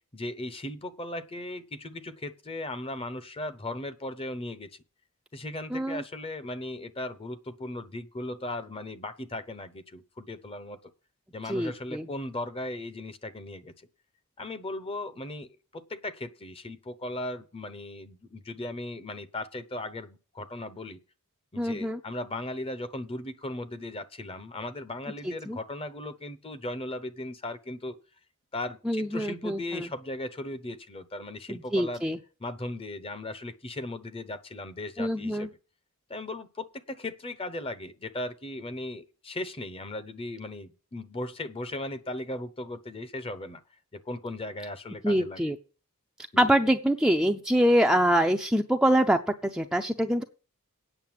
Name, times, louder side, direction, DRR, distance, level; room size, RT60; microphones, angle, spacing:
voice 1, 0.1-4.7 5.3-10.8 11.3-13.7 14.4-21.0 21.5-28.0 28.5-32.0 32.4-35.5 36.1-43.6 43.9-45.5 46.3-46.5, left 1 dB, 25° left, 13 dB, 0.8 m, -37 dB
voice 2, 5.7-6.0 11.5-12.1 21.6-22.0 25.2-25.6 28.9-29.9 31.5-32.2 35.0-35.5 45.0-45.6 46.4-50.2, equal, 5° right, 4 dB, 0.5 m, -25 dB
9.0 x 6.5 x 7.6 m, 0.37 s
head